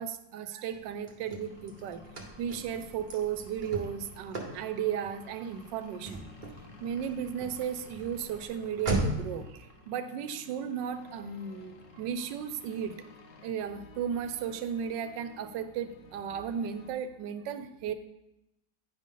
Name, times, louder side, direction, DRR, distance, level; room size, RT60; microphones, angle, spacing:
voice 1, 0.0-2.0 2.4-6.3 6.8-13.0 13.4-17.9, right 8 dB, 80° right, 10 dB, 1.3 m, -35 dB
Car / Slam, 0.7-9.4, right 2 dB, 35° right, 0.9 m, -38 dB
sound 1, 1.4-13.5, left 3 dB, 50° left, 1.3 m, -55 dB
sound 2, 10.8-16.9, left 6 dB, 85° left, 1.3 m, -55 dB
9.0 x 5.2 x 3.7 m, 0.89 s
omnidirectional pair, 1.9 m